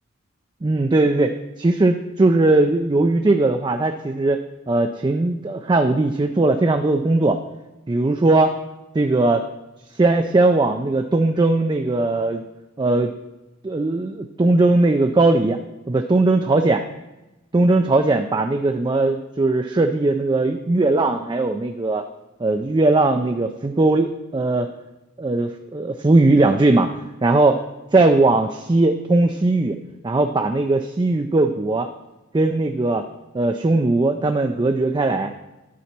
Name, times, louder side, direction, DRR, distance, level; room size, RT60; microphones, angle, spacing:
voice 1, 0.6-4.4 4.7-7.4 7.9-8.6 8.9-9.5 9.9-12.4 12.8-13.1 13.6-15.6 15.9-16.8 17.5-22.0 22.4-24.7 25.2-26.9 27.2-27.6 27.9-29.7 30.0-31.9 32.3-33.0 33.3-35.3, right 2 dB, 20° right, 5 dB, 0.3 m, -19 dB
11.0 x 4.2 x 5.9 m, 1.0 s
head